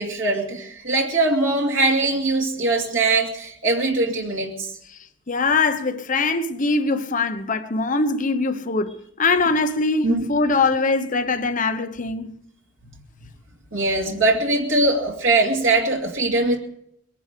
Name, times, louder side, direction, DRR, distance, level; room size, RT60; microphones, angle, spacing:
voice 1, 0.0-4.7 10.0-10.3 13.7-16.6, right 2 dB, 90° right, 2.5 m, -21 dB
voice 2, 5.3-12.3, left 3 dB, 40° left, 1.0 m, -22 dB
22.0 x 10.5 x 5.1 m
head